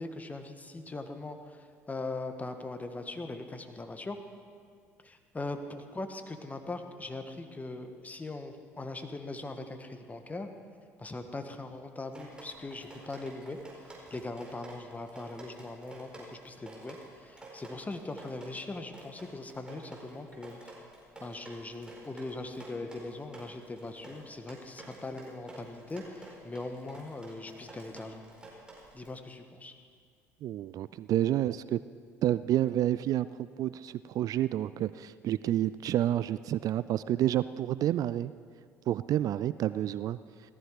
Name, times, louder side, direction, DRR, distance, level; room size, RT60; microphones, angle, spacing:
voice 1, 0.0-4.2 5.0-10.5 11.0-13.6 14.1-20.7 21.2-28.2 28.9-29.7, left 2 dB, 20° left, 6 dB, 1.6 m, -40 dB
Drip, 12.1-29.1, right 2 dB, 10° right, 4.5 m, -50 dB
voice 2, 30.4-31.8 32.2-38.3 38.9-40.2, right 12 dB, 50° right, 16 dB, 0.4 m, -29 dB
17.5 x 14.0 x 4.9 m, 2.1 s
hypercardioid pair, 60°, 8 cm